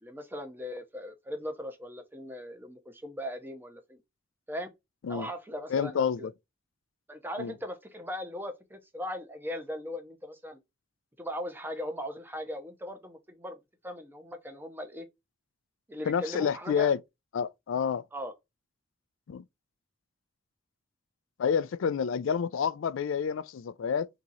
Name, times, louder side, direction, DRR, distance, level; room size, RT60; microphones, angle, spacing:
voice 1, 0.0-4.0 4.5-4.7 5.1-6.3 7.1-10.6 11.2-15.1 15.9-16.9 18.1-18.3, equal, 10° right, 0.8 m, -39 dB
voice 2, 5.7-6.3 7.4-7.5 16.1-17.0 17.3-18.0 19.3-19.4 21.4-24.1, left 7 dB, 70° left, 0.4 m, -29 dB
3.7 x 2.9 x 4.0 m
head